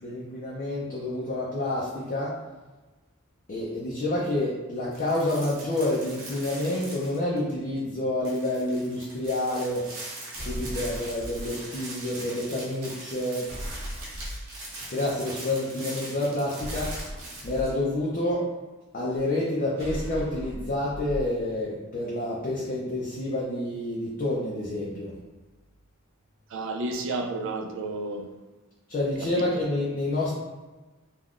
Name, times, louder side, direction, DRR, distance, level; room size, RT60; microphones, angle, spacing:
voice 1, 0.0-2.3 3.5-9.9 10.5-13.4 14.7-16.9 17.4-18.4 18.9-25.1 28.9-30.3, left 1 dB, 40° left, 0.5 m, -28 dB
sound 1, 4.9-7.5 7.8-7.9 8.2-17.7, right 2 dB, 85° right, 0.9 m, -41 dB
sound 2, 10.3-11.4 13.4-14.5 16.6-17.6 19.8-21.2, equal, 30° right, 0.7 m, -37 dB
voice 2, 26.5-28.3 29.2-29.5, right 2 dB, 60° right, 0.3 m, -32 dB
3.5 x 2.2 x 2.4 m
head